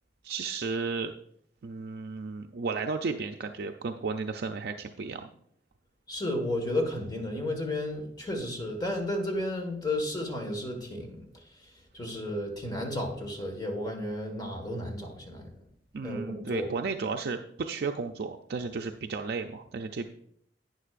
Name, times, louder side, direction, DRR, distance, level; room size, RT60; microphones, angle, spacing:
voice 1, 0.2-1.1 1.6-5.3 15.9-20.1, right 4 dB, 60° right, 5 dB, 0.5 m, -33 dB
voice 2, 6.1-11.2 11.9-15.4 16.0-16.7, left 1 dB, 25° left, 3 dB, 1.6 m, -33 dB
11.0 x 9.2 x 2.5 m, 0.69 s
head